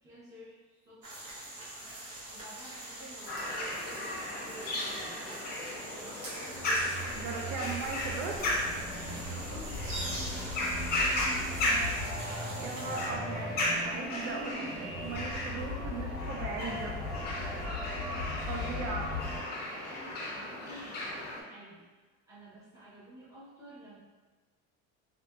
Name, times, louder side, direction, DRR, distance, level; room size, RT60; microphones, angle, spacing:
voice 1, 0.0-1.2 2.3-7.6 8.9-13.3 17.3-24.0, right 1 dB, 10° right, -9 dB, 0.7 m, -53 dB
sound 1, 1.0-13.1, right 1 dB, 50° right, 0.9 m, -44 dB
sound 2, 3.3-21.4, left 1 dB, 30° left, 0.5 m, -35 dB
sound 3, 6.5-19.4, left 1 dB, 90° right, 1.3 m, -39 dB
voice 2, 7.2-8.5 12.3-13.5 13.8-17.1 18.5-19.1, right 4 dB, 70° right, 0 dB, 0.5 m, -38 dB
2.7 x 2.6 x 2.3 m, 1.3 s
cardioid pair, 150°, 31 cm